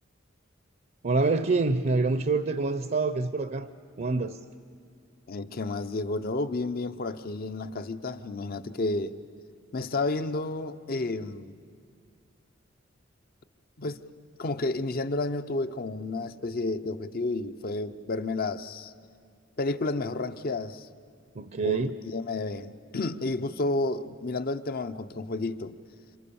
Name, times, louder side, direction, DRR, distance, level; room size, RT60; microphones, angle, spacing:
voice 1, 1.0-3.7 4.0-4.4 21.4-22.0, right 3 dB, 45° right, 11 dB, 0.6 m, -26 dB
voice 2, 5.3-9.2 9.7-11.6 13.8-14.0 14.4-18.9 19.6-20.9 21.6-25.8, left 2 dB, 50° left, 11 dB, 0.8 m, -31 dB
28.5 x 26.5 x 7.0 m, 2.2 s
head